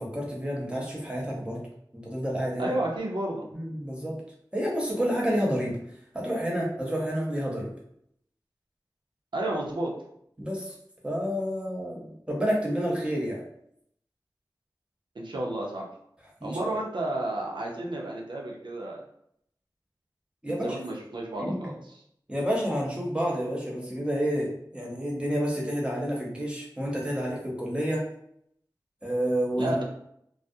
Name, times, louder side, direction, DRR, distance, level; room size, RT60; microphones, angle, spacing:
voice 1, 0.0-1.6 1.9-2.7 3.5-4.2 4.5-5.8 6.1-7.7 10.4-10.7 11.0-13.4 16.4-16.7 20.4-20.7 21.4-21.6 22.3-28.1 29.0-29.7, equal, 15° right, -3 dB, 0.8 m, -29 dB
voice 2, 2.6-3.4 9.3-9.9 15.1-15.9 16.4-19.0 20.5-21.8 29.6-29.8, right 1 dB, 75° right, -2 dB, 0.5 m, -31 dB
2.3 x 2.0 x 2.6 m, 0.72 s
wide cardioid pair, 50°, 8 cm